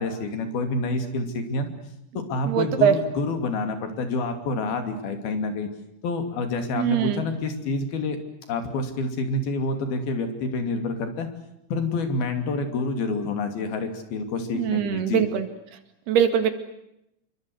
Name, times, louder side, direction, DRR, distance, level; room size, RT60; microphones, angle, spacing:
voice 1, 0.0-1.7 2.1-5.7 6.0-8.2 8.5-11.3 11.7-15.3, left 3 dB, 70° left, 7 dB, 4.7 m, -28 dB
voice 2, 2.5-3.0 6.8-7.2 14.5-15.5 16.1-16.5, right 9 dB, 85° right, 9 dB, 4.1 m, -22 dB
27.5 x 23.5 x 8.0 m, 0.83 s
omnidirectional pair, 4.5 m